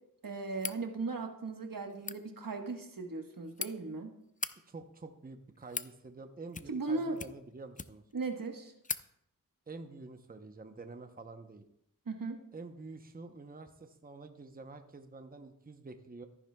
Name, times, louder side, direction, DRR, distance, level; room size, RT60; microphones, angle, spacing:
voice 1, 0.2-4.1 6.7-7.2 8.1-8.7 12.1-12.4, right 3 dB, 75° right, 4 dB, 1.3 m, -37 dB
sound 1, 0.5-0.8 1.9-2.2 3.2-3.7 4.3-4.5 5.3-5.9 6.5-6.9 7.2-8.1 8.5-8.6 8.8-9.0, left 4 dB, 25° left, 0.4 m, -39 dB
voice 2, 4.7-8.0 9.7-11.6 12.5-16.3, right 3 dB, 25° right, 7 dB, 0.8 m, -48 dB
13.5 x 9.9 x 2.3 m, 0.75 s
wide cardioid pair, 55°, 34 cm